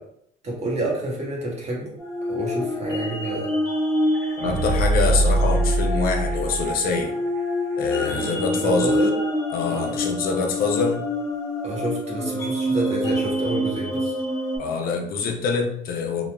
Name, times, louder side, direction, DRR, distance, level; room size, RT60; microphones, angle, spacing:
voice 1, 0.4-1.9 2.3-3.5 8.1-9.1 9.6-10.0 11.6-14.1, right 1 dB, 40° right, -3 dB, 1.0 m, -29 dB
sound 1, 2.0-14.6, left 1 dB, 20° left, 1.5 m, -26 dB
sound 2, 4.1-7.0 7.4-7.5, right 2 dB, 60° right, 1.4 m, -22 dB
voice 2, 4.4-7.1 7.8-9.0 9.5-11.0 14.6-16.3, left 4 dB, 60° left, 2 dB, 0.6 m, -25 dB
3.0 x 2.3 x 2.2 m, 0.71 s
cardioid pair, 110°, 17 cm